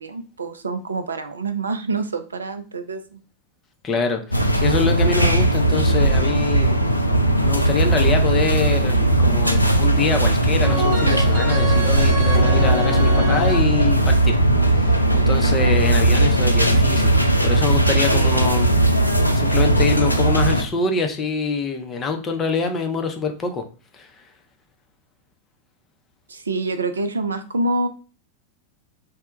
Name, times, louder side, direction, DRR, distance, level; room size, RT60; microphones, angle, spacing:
voice 1, 0.0-3.2 18.1-18.3 26.3-27.9, right 3 dB, 75° right, 8 dB, 0.3 m, -26 dB
voice 2, 3.8-7.1 7.4-14.4 14.7-18.7 19.3-23.6 23.9-24.1, left 4 dB, 25° left, 4 dB, 0.5 m, -25 dB
sound 1, 4.3-20.6, right 1 dB, 85° left, 0.3 m, -18 dB
sound 2, 10.6-13.6, equal, 60° right, 0.7 m, -25 dB
2.1 x 2.1 x 3.8 m, 0.35 s
figure-of-eight pair, 90°, 0 cm